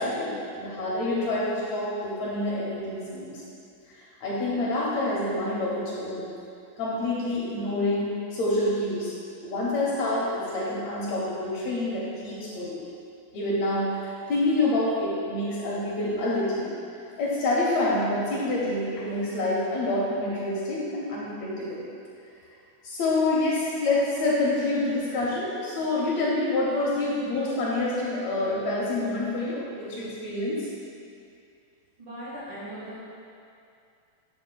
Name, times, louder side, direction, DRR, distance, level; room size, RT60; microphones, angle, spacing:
voice 1, 0.0-3.4 3.9-6.3 6.8-9.1 9.4-12.8 13.3-16.7 17.2-21.8 22.8-30.7, left 2 dB, 70° left, -6 dB, 2.0 m, -27 dB
voice 2, 32.0-33.0, equal, 50° right, -11 dB, 2.1 m, -38 dB
7.6 x 7.6 x 2.2 m, 2.5 s
omnidirectional pair, 3.4 m